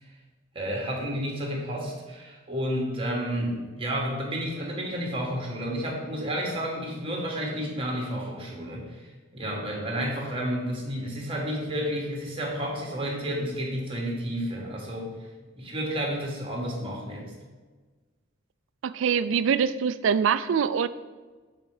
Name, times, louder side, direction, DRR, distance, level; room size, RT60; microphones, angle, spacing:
voice 1, 0.5-9.0 9.3-15.2 15.6-17.3, equal, 30° right, -1 dB, 1.7 m, -31 dB
voice 2, 18.8-20.9, right 7 dB, 70° right, 15 dB, 0.4 m, -24 dB
7.6 x 4.4 x 4.9 m, 1.3 s
head